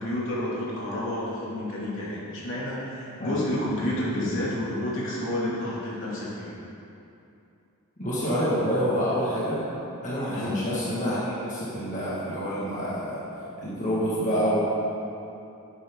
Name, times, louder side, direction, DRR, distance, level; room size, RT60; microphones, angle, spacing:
voice 1, 0.0-6.5 10.3-10.6, left 1 dB, 60° left, -6 dB, 2.8 m, -30 dB
voice 2, 3.2-3.5 8.0-9.6 10.0-13.2 13.6-14.6, equal, 35° left, -9 dB, 2.1 m, -27 dB
11.5 x 9.9 x 3.9 m, 2.7 s
head